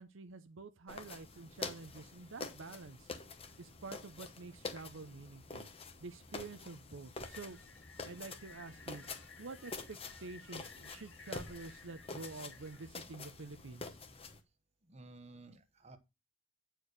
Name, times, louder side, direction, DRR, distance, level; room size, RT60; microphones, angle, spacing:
voice 1, 0.0-3.1 3.6-5.7 6.0-7.6 8.0-9.0 9.4-14.0, right 3 dB, 70° right, 0.7 m, -48 dB
sound 1, 0.9-14.4, left 3 dB, 25° left, 0.9 m, -47 dB
sound 2, 7.2-12.9, left 5 dB, 60° left, 2.2 m, -58 dB
voice 2, 14.9-16.0, right 2 dB, 30° right, 1.0 m, -54 dB
9.0 x 4.6 x 6.4 m
head